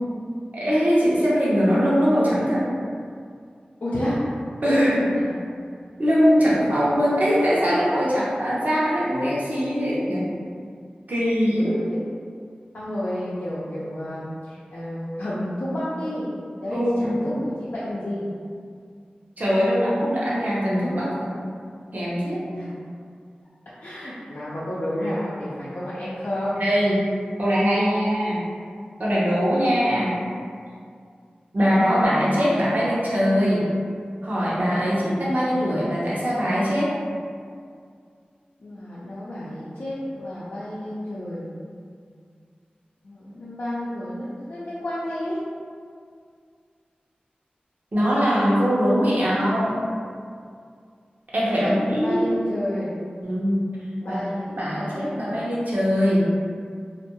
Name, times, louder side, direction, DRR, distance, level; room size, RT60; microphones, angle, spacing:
voice 1, 0.5-2.7 4.6-5.0 6.0-10.3 11.1-11.9 16.7-17.2 19.4-21.4 21.9-22.4 26.6-27.1 27.4-28.4 29.0-30.2 31.5-33.7 34.2-36.9 47.9-49.8 51.3-52.2 53.2-53.7 54.1-54.2 54.5-56.3, equal, 55° right, -8 dB, 0.9 m, -21 dB
voice 2, 3.8-4.2 4.6-5.1 11.5-12.0 12.7-18.3 22.5-22.7 23.8-26.6 34.7-35.1 38.6-41.5 43.0-45.4 51.6-52.9 54.0-55.4, left 1 dB, 75° left, -11 dB, 0.5 m, -30 dB
2.5 x 2.2 x 2.9 m, 2.2 s
cardioid pair, 40°, 3 cm